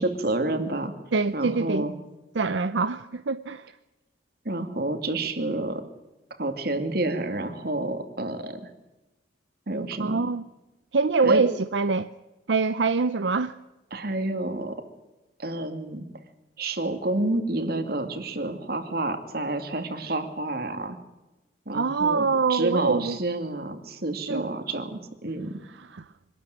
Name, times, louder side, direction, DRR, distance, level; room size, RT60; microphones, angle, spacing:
voice 1, 0.0-0.9 1.3-1.9 4.4-5.8 6.4-8.7 9.7-10.3 11.2-11.4 13.9-14.8 15.4-16.0 16.6-21.0 21.7-25.6, right 2 dB, 60° right, 2.5 m, -29 dB
voice 2, 1.1-1.9 2.3-3.7 10.0-10.4 10.9-12.1 12.5-13.6 21.7-23.2 24.3-24.5 25.8-26.1, right 4 dB, 80° right, 0.6 m, -24 dB
25.0 x 13.0 x 9.4 m
head